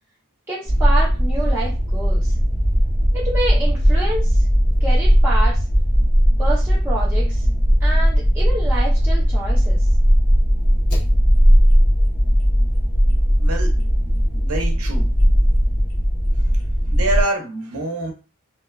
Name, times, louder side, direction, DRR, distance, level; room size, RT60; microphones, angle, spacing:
voice 1, 0.5-2.3 3.1-4.4 4.8-5.6 6.4-7.4 7.8-9.8, right 2 dB, 10° right, 0.5 m, -28 dB
sound 1, 0.7-17.2, equal, 65° left, 0.9 m, -17 dB
voice 2, 13.4-13.8 14.3-15.1 16.9-18.1, right 2 dB, 70° right, 0.7 m, -26 dB
2.9 x 2.2 x 2.2 m
head